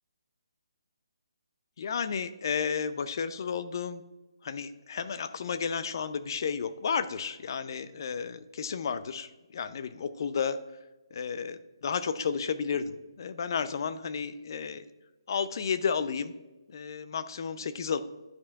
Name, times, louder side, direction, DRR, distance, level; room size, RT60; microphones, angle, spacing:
voice 1, 1.8-4.0 4.4-10.6 11.1-14.8 15.3-16.3 16.7-18.0, left 6 dB, 50° left, 13 dB, 0.5 m, -32 dB
11.0 x 5.1 x 2.3 m, 1.1 s
hypercardioid pair, 155°, 3 cm